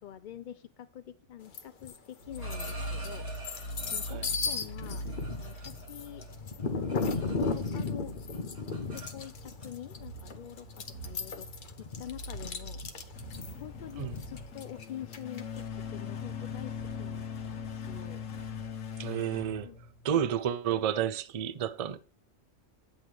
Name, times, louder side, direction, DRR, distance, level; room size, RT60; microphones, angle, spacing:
voice 1, 0.0-6.3 6.7-8.2 8.9-12.8 13.3-18.3 19.6-19.8 20.8-20.9, left 10 dB, 70° left, 0.4 m, -46 dB
sound 1, 1.5-2.0 2.4-15.6, left 4 dB, 45° left, 0.9 m, -36 dB
sound 2, 2.2-20.4, left 3 dB, 85° left, 1.4 m, -41 dB
sound 3, 2.2-4.3 4.8-7.9 8.1-9.7 10.6-10.7 11.0-11.4 11.8-12.1 12.4-12.7 12.9-13.2 13.5-18.9, right 3 dB, 70° right, 3.2 m, -50 dB
voice 2, 19.0-19.7 20.0-22.0, right 9 dB, 55° right, 0.4 m, -31 dB
10.0 x 7.5 x 3.3 m
omnidirectional pair, 1.3 m